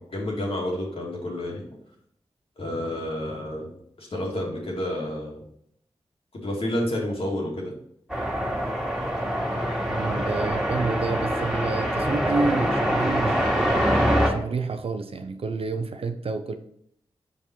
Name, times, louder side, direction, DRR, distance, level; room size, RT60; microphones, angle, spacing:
voice 1, 0.1-1.6 2.6-3.7 4.0-5.4 6.3-7.7, left 1 dB, 65° left, -2 dB, 2.3 m, -29 dB
sound 1, 8.1-14.3, equal, ahead, 2.1 m, -24 dB
voice 2, 9.9-16.6, right 4 dB, 65° right, 8 dB, 0.7 m, -29 dB
5.3 x 4.8 x 4.5 m, 0.69 s
cardioid pair, 45°, 10 cm